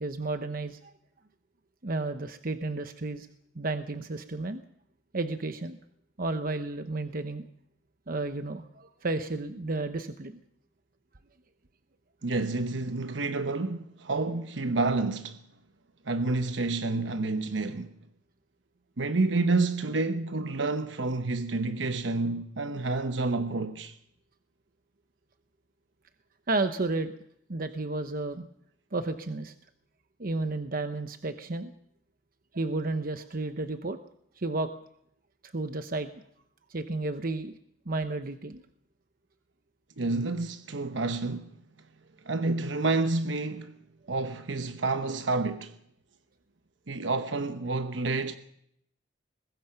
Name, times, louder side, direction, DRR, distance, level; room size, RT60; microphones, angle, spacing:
voice 1, 0.0-0.9 1.8-3.3 3.5-4.6 5.1-5.8 6.2-7.4 8.1-10.4 26.5-27.1 27.5-28.4 28.9-29.5 30.2-31.7 32.5-34.0 34.4-34.7 35.4-36.1 36.7-37.5 37.9-38.6, right 2 dB, 50° right, 1.0 m, -32 dB
voice 2, 12.2-15.4 16.0-17.9 19.0-24.0 40.0-41.5 42.2-43.8 44.1-45.8 46.9-48.4, right 3 dB, 85° right, 1.0 m, -29 dB
22.5 x 20.0 x 5.8 m
head